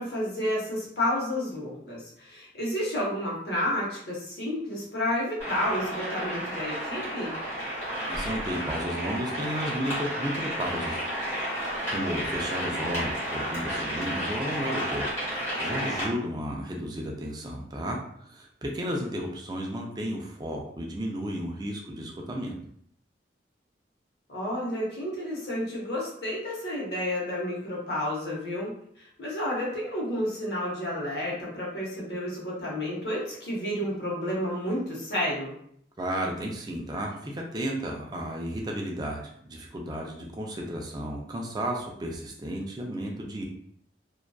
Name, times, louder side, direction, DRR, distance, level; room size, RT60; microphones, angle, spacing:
voice 1, 0.0-7.4 24.3-35.5, left 1 dB, 65° left, -5 dB, 0.8 m, -31 dB
sound 1, 5.4-16.0, equal, 15° left, 1.1 m, -32 dB
voice 2, 8.1-11.1 11.9-22.5 36.0-43.4, equal, 20° right, 0 dB, 0.4 m, -33 dB
2.5 x 2.2 x 2.2 m, 0.69 s
head